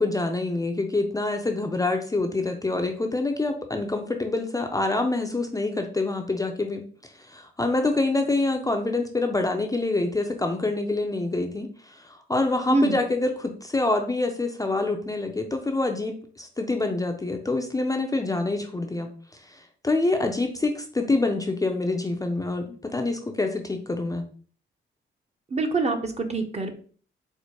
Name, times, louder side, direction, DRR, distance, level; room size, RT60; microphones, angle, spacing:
voice 1, 0.0-24.3, left 2 dB, 15° left, 3 dB, 0.4 m, -26 dB
voice 2, 25.5-26.7, right 3 dB, 30° right, 5 dB, 0.6 m, -25 dB
4.3 x 2.0 x 2.8 m, 0.43 s
cardioid pair, 85°, 21 cm